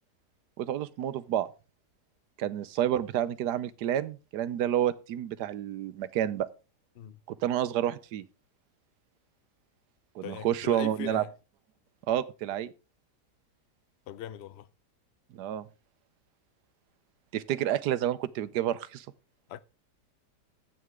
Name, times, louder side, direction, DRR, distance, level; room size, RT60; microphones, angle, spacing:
voice 1, 0.6-1.5 2.4-6.5 7.4-8.2 10.1-11.2 12.1-12.7 15.3-15.7 17.3-19.1, right 11 dB, 80° right, 1.3 m, -29 dB
voice 2, 10.2-11.3 14.1-14.7 19.5-19.6, left 10 dB, 65° left, 0.6 m, -40 dB
12.5 x 8.7 x 3.6 m
omnidirectional pair, 1.8 m